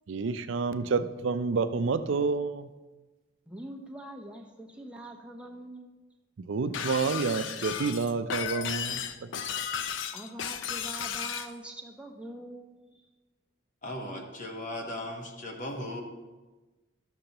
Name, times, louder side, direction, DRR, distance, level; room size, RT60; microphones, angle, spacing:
voice 1, 0.1-2.7 6.5-9.4, right 4 dB, 75° right, 11 dB, 0.5 m, -29 dB
voice 2, 3.5-6.0 10.1-12.7 12.9-13.0, right 1 dB, 5° right, 0 dB, 0.7 m, -44 dB
Shatter, 6.7-11.5, left 8 dB, 70° left, 0.4 m, -34 dB
voice 3, 13.8-16.0, left 1 dB, 40° left, 1 dB, 1.2 m, -37 dB
12.5 x 6.7 x 2.9 m, 1.2 s
head